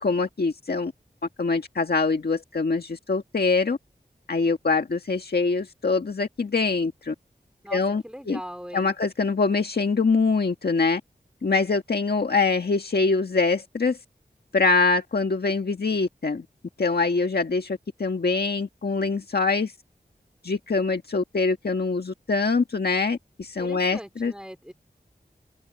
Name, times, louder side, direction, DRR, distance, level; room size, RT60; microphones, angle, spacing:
voice 1, 0.0-0.9 1.4-3.8 4.3-7.1 7.7-8.4 8.7-11.0 11.4-14.0 14.5-16.4 16.8-19.7 20.4-24.3, left 4 dB, 75° left, 1.6 m, -24 dB
voice 2, 7.6-8.9 23.6-24.7, equal, 5° right, 3.4 m, -40 dB
wide cardioid pair, 70°, 17 cm